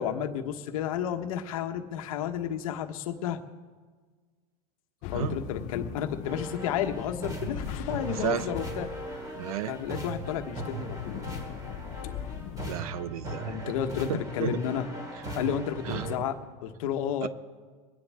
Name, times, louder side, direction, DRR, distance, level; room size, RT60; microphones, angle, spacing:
voice 1, 0.0-3.4 5.1-8.9 9.7-11.3 13.4-14.9 15.3-17.3, left 9 dB, 70° left, 6 dB, 1.3 m, -32 dB
sound 1, 5.0-12.7, left 9 dB, 40° left, 0.7 m, -40 dB
sound 2, 6.2-16.2, right 1 dB, 20° right, 2.6 m, -38 dB
voice 2, 8.2-8.5 9.4-9.7 12.7-13.7 14.1-14.6 15.9-16.1 17.2-17.3, right 9 dB, 75° right, 16 dB, 0.7 m, -32 dB
24.0 x 10.0 x 3.6 m, 1.5 s
supercardioid pair, 160°, 19 cm